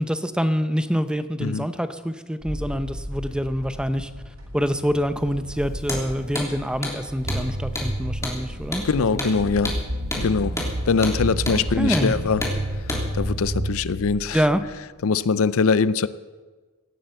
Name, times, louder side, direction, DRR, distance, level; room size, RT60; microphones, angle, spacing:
voice 1, 0.0-4.1 4.5-9.3 11.8-12.2 14.3-14.6, equal, 5° right, 10 dB, 0.7 m, -25 dB
sound 1, 2.4-10.0, equal, 75° right, 3.8 m, -38 dB
Hammer, 5.8-6.0 6.3-6.5 6.8-7.0 7.3-7.4 7.7-7.9 8.2-8.4 8.7-8.9 9.2-9.3 9.6-9.8 10.1-10.2 10.6-10.7 11.0-11.2 11.5-11.6 11.9-12.1 12.4-12.6 12.9-13.0, left 2 dB, 15° left, 3.3 m, -29 dB
sound 2, 7.2-14.8, right 1 dB, 55° right, 1.6 m, -30 dB
voice 2, 8.8-9.8 10.2-10.6 10.9-12.4 13.1-14.4 15.0-16.1, left 5 dB, 65° left, 16 dB, 0.5 m, -22 dB
17.5 x 10.0 x 7.8 m, 1.3 s
head